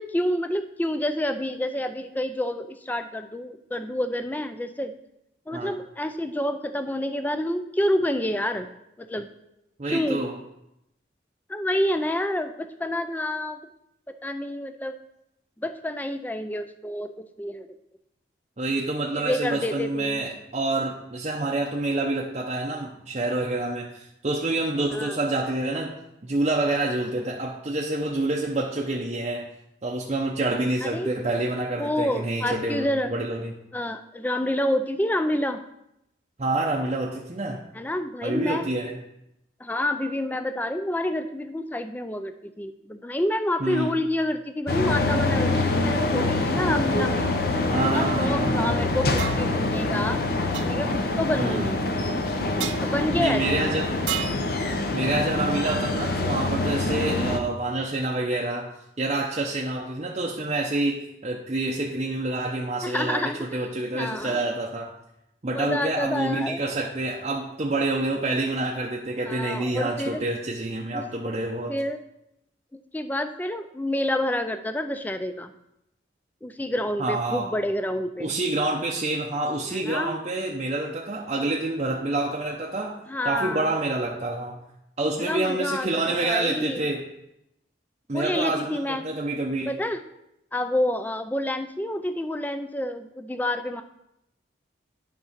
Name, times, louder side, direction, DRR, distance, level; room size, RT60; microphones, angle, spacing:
voice 1, 0.0-4.9 5.5-8.7 9.0-9.3 9.9-10.2 11.5-13.6 14.1-15.0 15.6-17.7 19.1-20.3 24.9-25.2 30.8-31.1 31.8-33.1 33.7-35.6 37.7-38.7 39.6-47.3 47.9-50.2 50.6-51.8 52.8-53.7 62.8-63.6 63.9-64.4 65.5-66.6 69.2-70.2 70.9-71.1 71.7-72.0 72.7-75.5 76.4-78.3 79.7-80.2 83.1-83.8 85.2-86.9 88.1-89.0 89.7-90.0 90.5-93.8, left 1 dB, 10° left, 9 dB, 0.3 m, -28 dB
voice 2, 9.8-10.3 18.6-29.5 29.8-33.5 36.4-37.7 38.2-39.0 43.6-44.0 47.7-48.8 51.4-51.7 53.1-54.0 54.9-64.9 65.4-71.7 77.0-77.5 78.2-84.7 85.0-87.0 88.1-89.7, right 2 dB, 35° right, -2 dB, 0.6 m, -27 dB
sound 1, 44.7-57.4, left 2 dB, 50° left, 0.7 m, -25 dB
sound 2, 49.2-49.4 50.5-50.7 52.6-52.8 54.1-54.4, right 11 dB, 75° right, 0.4 m, -30 dB
9.8 x 3.7 x 5.8 m, 0.85 s
head